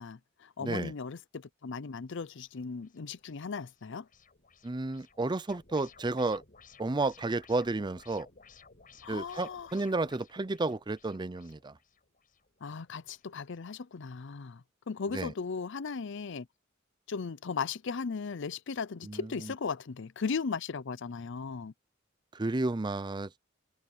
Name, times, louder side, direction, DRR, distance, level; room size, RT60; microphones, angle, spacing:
voice 1, 0.0-4.1 9.0-9.7 12.6-16.5 17.1-21.7, left 5 dB, 65° left, 0.6 m, -37 dB
voice 2, 0.6-0.9 4.6-6.4 6.8-8.3 9.1-11.7 15.1-15.3 19.0-19.5 22.3-23.3, right 2 dB, 20° right, 0.5 m, -32 dB
sound 1, 2.3-13.6, left 5 dB, 45° left, 7.7 m, -59 dB
head